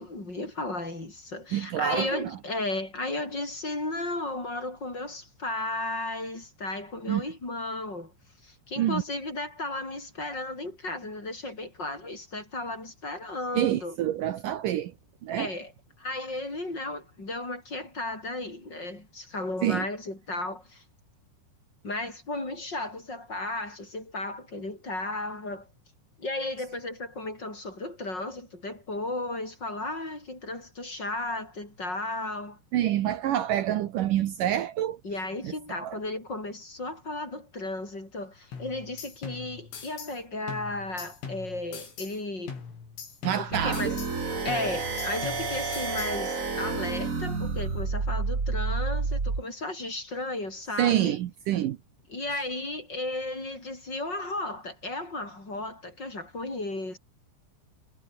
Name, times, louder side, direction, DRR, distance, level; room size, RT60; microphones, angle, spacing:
voice 1, 0.0-8.1 8.4-14.0 15.3-15.7 16.0-20.8 21.8-25.7 26.2-32.6 35.0-42.5 43.4-51.1 52.1-57.0, left 2 dB, 20° left, 6.7 m, -34 dB
voice 2, 1.5-2.3 7.1-7.2 8.8-9.0 13.5-14.9 15.2-15.5 19.6-19.9 32.7-35.0 35.4-36.0 43.2-44.0 50.8-51.8, right 12 dB, 90° right, 1.8 m, -27 dB
sound 1, 38.5-40.2 40.5-42.2 42.5-44.2 44.5-46.2, left 5 dB, 85° left, 9.0 m, -42 dB
sound 2, 43.5-49.4, right 4 dB, 30° right, 1.7 m, -30 dB
omnidirectional pair, 5.5 m